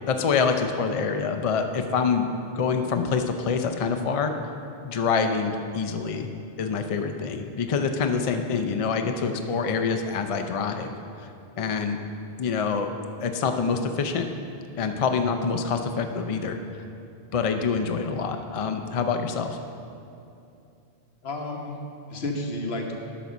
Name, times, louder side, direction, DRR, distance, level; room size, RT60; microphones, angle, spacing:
voice 1, 0.1-4.3 4.8-6.3 6.6-11.3 11.6-12.0 12.4-12.9 13.2-14.3 14.8-16.8 17.3-19.6, left 5 dB, 50° left, 6 dB, 0.4 m, -26 dB
voice 2, 21.2-22.9, left 2 dB, 70° left, 2 dB, 1.2 m, -32 dB
11.5 x 4.1 x 6.1 m, 2.7 s
omnidirectional pair, 1.1 m